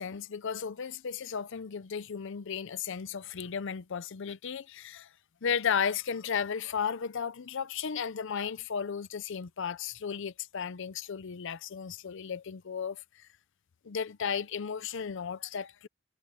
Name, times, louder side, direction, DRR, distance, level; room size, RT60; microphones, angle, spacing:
voice 1, 0.0-5.1 5.4-13.3 13.8-15.9, left 7 dB, 55° left, 0.5 m, -34 dB
head